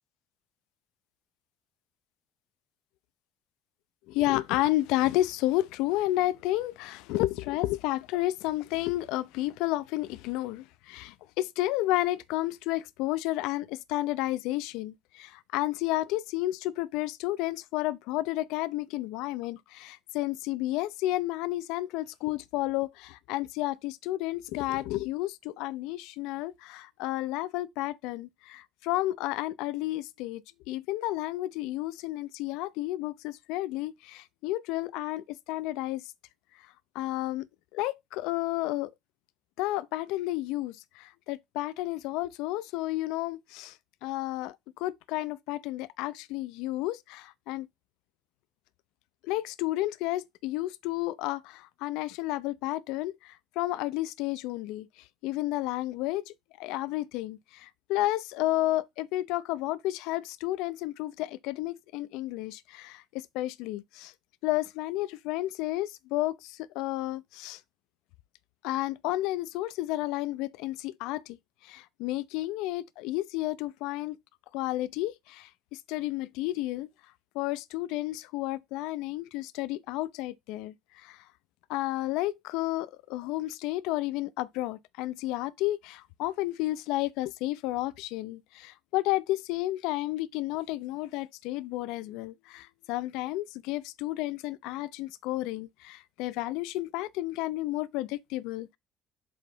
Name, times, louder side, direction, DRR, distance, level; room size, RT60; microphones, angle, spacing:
voice 1, 4.1-36.1 36.9-37.5 37.7-38.9 39.6-43.8 44.0-47.7 49.2-54.9 55.2-64.1 64.4-67.6 68.6-71.4 71.6-74.2 74.5-76.9 77.3-81.2 81.7-98.8, left 16 dB, 65° left, 0.4 m, -31 dB
7.6 x 2.7 x 5.4 m
figure-of-eight pair, 55°, 0 cm